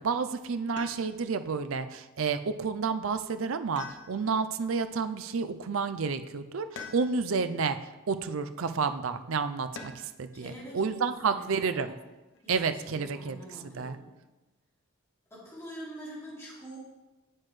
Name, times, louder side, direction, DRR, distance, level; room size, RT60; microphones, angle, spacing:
voice 1, 0.0-7.8 8.1-11.9 12.5-13.4 13.8-14.0, right 5 dB, 65° right, 10 dB, 0.5 m, -30 dB
sound 1, 0.8-1.4 3.8-4.6 6.8-7.5 9.8-10.3 12.0-12.6, left 4 dB, 55° left, 0.8 m, -45 dB
voice 2, 10.3-10.9 11.3-12.0 12.4-14.1 15.3-16.8, right 1 dB, 15° left, -9 dB, 3.1 m, -45 dB
8.7 x 7.9 x 3.2 m, 1.1 s
head